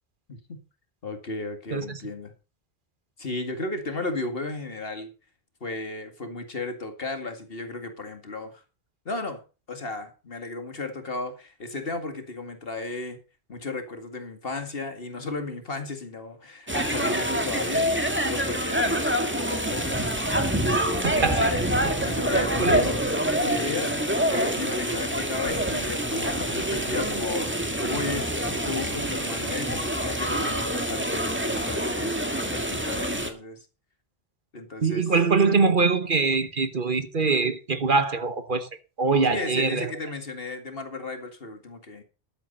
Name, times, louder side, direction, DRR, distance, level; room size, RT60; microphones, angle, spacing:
voice 1, 0.3-0.6 1.0-2.3 3.2-5.1 5.6-8.6 9.1-9.4 9.7-13.2 13.5-20.1 20.5-23.9 24.3-28.4 28.7-32.2 32.5-33.7 34.5-35.1 39.3-42.0, left 3 dB, 60° left, 2.3 m, -34 dB
sound 1, 16.7-33.3, equal, 10° right, 1.9 m, -26 dB
voice 2, 21.0-21.5 22.6-22.8 34.8-38.7 39.0-39.9, right 4 dB, 50° right, 1.4 m, -23 dB
13.0 x 8.8 x 5.4 m
omnidirectional pair, 1.1 m